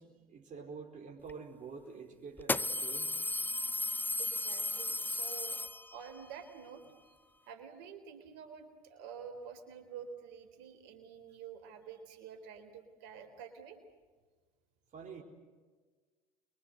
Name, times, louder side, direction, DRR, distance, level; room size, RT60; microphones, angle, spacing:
voice 1, 0.0-3.2 14.9-15.2, right 5 dB, 40° right, 1 dB, 4.6 m, -47 dB
sound 1, 1.3-1.4 2.4-6.2, left 2 dB, 10° left, 0.7 m, -35 dB
voice 2, 4.2-5.6 5.9-7.2 7.5-13.8, right 7 dB, 70° right, 8 dB, 3.9 m, -49 dB
28.5 x 23.5 x 8.0 m, 1.4 s
hypercardioid pair, 70°, 19 cm